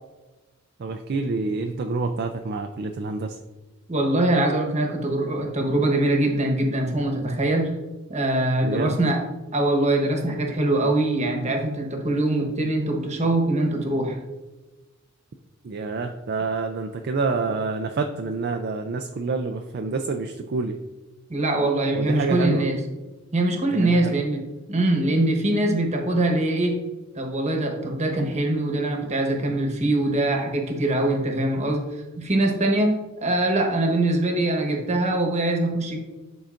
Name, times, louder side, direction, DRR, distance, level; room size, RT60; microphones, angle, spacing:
voice 1, 0.8-3.4 8.6-9.0 15.6-20.8 21.9-22.6 23.7-24.2, right 4 dB, 50° right, 5 dB, 0.4 m, -27 dB
voice 2, 3.9-7.7 8.1-9.2 9.5-14.2 21.3-22.8 23.3-24.4 24.7-26.8 27.1-36.0, right 1 dB, 30° right, 2 dB, 1.1 m, -23 dB
11.5 x 3.9 x 2.5 m, 1.2 s
head